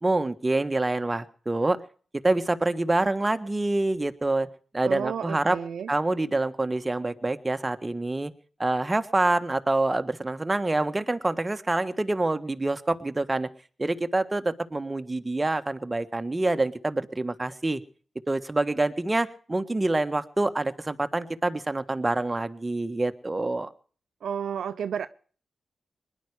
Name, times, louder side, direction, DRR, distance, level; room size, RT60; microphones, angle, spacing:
voice 1, 0.0-1.8 2.2-4.5 4.7-5.6 5.9-8.3 8.6-13.5 13.8-17.8 18.3-23.7, right 2 dB, 25° right, 1.5 m, -26 dB
voice 2, 4.8-5.9 24.2-25.1, right 8 dB, 80° right, 0.6 m, -31 dB
20.5 x 11.0 x 4.9 m
supercardioid pair, 45°, 0 cm